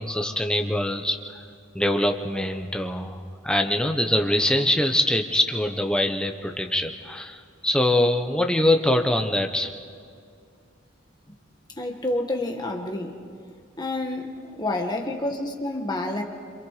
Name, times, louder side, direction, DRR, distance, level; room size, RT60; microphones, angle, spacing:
voice 1, 0.0-1.4 1.7-9.7, left 1 dB, 5° left, 4 dB, 1.1 m, -23 dB
voice 2, 11.8-13.2 13.8-16.2, left 2 dB, 20° left, 2 dB, 1.8 m, -29 dB
27.5 x 26.5 x 5.1 m, 2.2 s
head